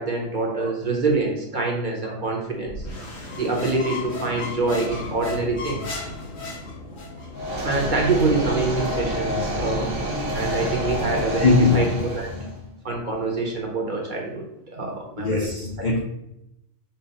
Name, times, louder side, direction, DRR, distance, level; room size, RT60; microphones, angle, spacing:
voice 1, 0.0-2.7 3.3-6.0 7.6-10.0 10.3-11.9 12.1-12.3 12.8-15.5, right 3 dB, 45° right, 0.8 m, -25 dB
sound 1, 2.6-11.8, left 1 dB, 85° left, 1.5 m, -40 dB
sound 2, 3.2-7.3, left 3 dB, 45° left, 1.0 m, -35 dB
sound 3, 7.3-12.5, equal, 85° right, 1.5 m, -28 dB
voice 2, 11.4-12.0 12.3-12.5 15.2-16.0, left 4 dB, 60° left, 0.5 m, -21 dB
5.5 x 2.0 x 4.0 m
omnidirectional pair, 1.3 m